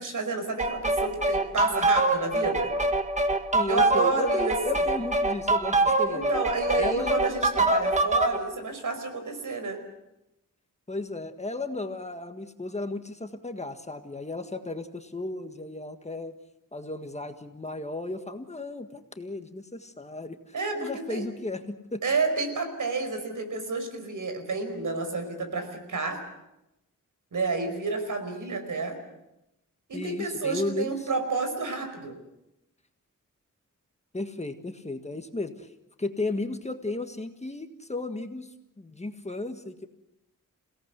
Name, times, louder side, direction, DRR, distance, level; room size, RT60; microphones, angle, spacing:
voice 1, 0.0-2.7 3.7-4.6 6.0-9.8 20.5-21.2 22.0-26.2 27.3-29.0 29.9-32.1, right 3 dB, 70° right, 7 dB, 5.2 m, -30 dB
sound 1, 0.6-8.4, right 2 dB, 20° right, 1.8 m, -25 dB
voice 2, 3.5-6.3 6.8-7.2 10.9-16.3 16.7-22.0 29.9-31.1 34.1-35.7 36.0-39.9, left 2 dB, 20° left, 7 dB, 1.6 m, -34 dB
29.0 x 17.5 x 8.2 m, 0.89 s
wide cardioid pair, 120°, 32 cm